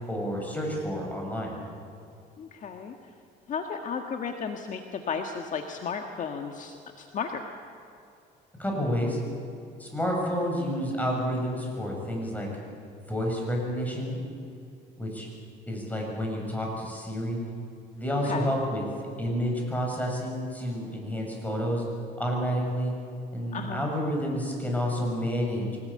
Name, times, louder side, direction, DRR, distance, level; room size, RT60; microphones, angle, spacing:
voice 1, 0.1-1.5 8.6-9.2 9.8-12.5 13.1-14.2 15.0-15.3 15.7-17.4 18.0-18.8 19.2-21.8 22.2-22.9 23.3-25.8, equal, 10° left, 0 dB, 7.4 m, -29 dB
voice 2, 2.4-2.9 3.5-7.4 18.2-18.5 23.5-23.9, left 6 dB, 50° left, 4 dB, 1.7 m, -34 dB
24.5 x 19.5 x 8.8 m, 2.6 s
cardioid pair, 110°, 17 cm